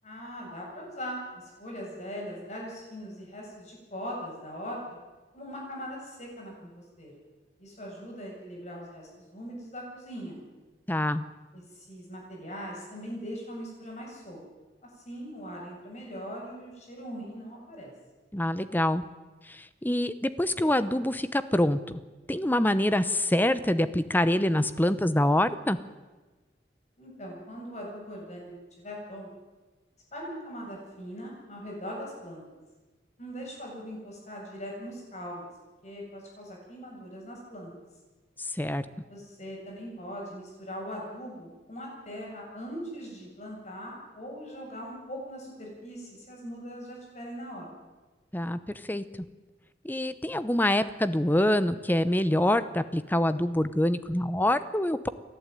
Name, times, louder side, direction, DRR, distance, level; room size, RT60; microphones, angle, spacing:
voice 1, 0.0-4.8 5.3-7.1 7.6-10.4 11.5-14.4 15.0-17.9 27.0-29.3 30.1-32.4 33.2-35.5 35.8-37.7 39.1-47.7, equal, 40° left, -2 dB, 7.7 m, -40 dB
voice 2, 10.9-11.2 18.3-19.0 19.4-22.0 22.3-25.8 38.4-38.8 48.3-48.6 48.9-49.0 49.8-55.1, left 1 dB, 10° left, 13 dB, 0.8 m, -25 dB
29.5 x 11.5 x 9.2 m, 1.2 s
head